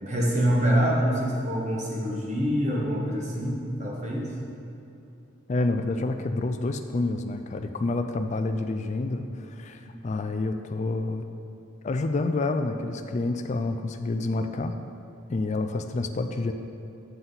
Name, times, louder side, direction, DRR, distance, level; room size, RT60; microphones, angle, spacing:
voice 1, 0.0-4.3 9.8-9.9, equal, 35° right, -3 dB, 1.2 m, -25 dB
voice 2, 5.5-11.2 11.8-14.8 15.3-16.5, left 2 dB, 35° left, 7 dB, 0.3 m, -28 dB
9.2 x 6.0 x 4.0 m, 2.8 s
head